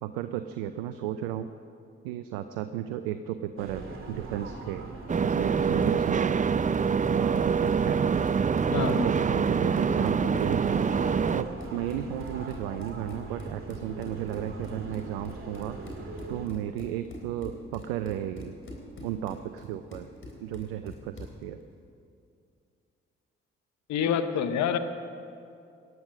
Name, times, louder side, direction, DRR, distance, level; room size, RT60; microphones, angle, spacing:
voice 1, 0.0-1.5 2.0-4.9 5.2-6.5 7.1-8.3 8.8-10.8 11.3-15.8 16.3-18.6 19.0-20.1 20.4-21.6, right 11 dB, 85° right, 10 dB, 0.5 m, -34 dB
sound 1, 3.6-16.5, right 3 dB, 45° right, 2.9 m, -40 dB
sound 2, 5.1-11.4, right 6 dB, 25° right, 0.5 m, -25 dB
Run, 5.6-21.4, left 1 dB, 45° left, 3.7 m, -46 dB
voice 2, 8.7-9.1 23.9-24.8, left 8 dB, 70° left, 10 dB, 1.0 m, -27 dB
18.0 x 11.0 x 6.4 m, 2.5 s
hypercardioid pair, 40°, 29 cm